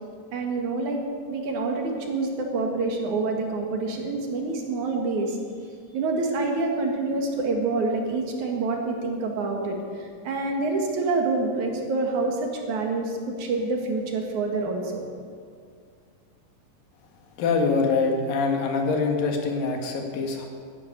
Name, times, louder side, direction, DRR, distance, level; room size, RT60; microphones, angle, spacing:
voice 1, 0.3-1.0 1.3-5.4 5.9-15.0, right 3 dB, 65° right, 2 dB, 3.0 m, -27 dB
voice 2, 17.4-20.5, left 4 dB, 85° left, 3 dB, 3.5 m, -24 dB
12.0 x 11.5 x 9.5 m, 2.1 s
omnidirectional pair, 3.9 m